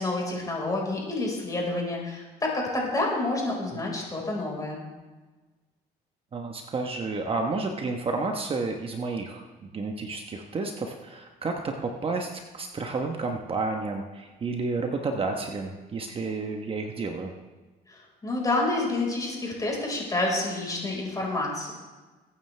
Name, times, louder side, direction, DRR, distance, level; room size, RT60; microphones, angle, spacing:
voice 1, 0.0-4.8 17.9-21.7, left 2 dB, 20° left, -2 dB, 4.7 m, -29 dB
voice 2, 6.3-17.3, right 3 dB, 35° right, 3 dB, 1.1 m, -31 dB
22.5 x 9.4 x 3.4 m, 1.3 s
cardioid pair, 110°, 17 cm